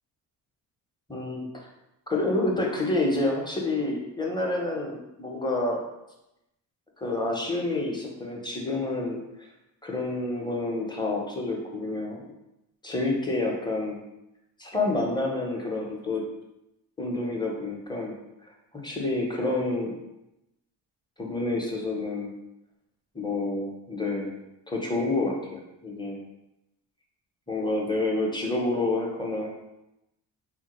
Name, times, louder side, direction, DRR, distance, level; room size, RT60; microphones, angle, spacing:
voice 1, 1.1-1.5 2.1-5.8 7.0-9.2 9.8-12.3 12.8-14.0 14.6-16.2 17.0-18.1 18.7-19.9 21.2-22.3 23.1-24.3 24.7-26.2 27.5-29.5, left 2 dB, 10° left, -1 dB, 0.6 m, -28 dB
3.1 x 2.1 x 2.9 m, 0.90 s
cardioid pair, 80°, 47 cm